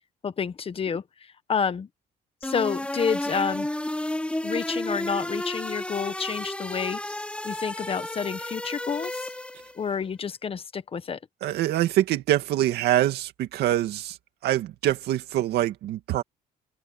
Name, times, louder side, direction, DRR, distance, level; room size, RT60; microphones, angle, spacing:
voice 1, 0.2-1.9 2.4-3.7 4.4-7.0 7.4-9.3 9.7-11.2, left 6 dB, 35° left, 1.3 m, -29 dB
sound 1, 2.4-9.8, left 1 dB, 5° left, 2.5 m, -32 dB
voice 2, 11.4-14.2 14.4-16.2, right 13 dB, 75° right, 2.2 m, -24 dB
open air
cardioid pair, 110°, 17 cm